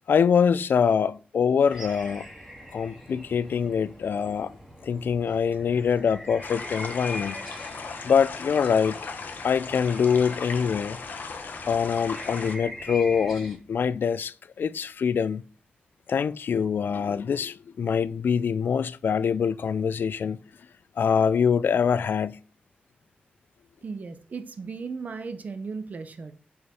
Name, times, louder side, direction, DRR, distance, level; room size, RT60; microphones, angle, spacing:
voice 1, 0.1-2.3 2.7-4.5 4.8-7.4 8.0-9.0 9.4-11.0 11.7-15.4 16.1-20.4 21.0-22.4, left 6 dB, 85° left, 0.3 m, -24 dB
sound 1, 1.7-13.6, equal, 5° right, 2.0 m, -43 dB
sound 2, 6.4-12.6, left 4 dB, 65° left, 1.1 m, -37 dB
voice 2, 23.8-26.3, right 4 dB, 50° right, 0.7 m, -36 dB
6.9 x 5.0 x 4.3 m
wide cardioid pair, 180°, 3 cm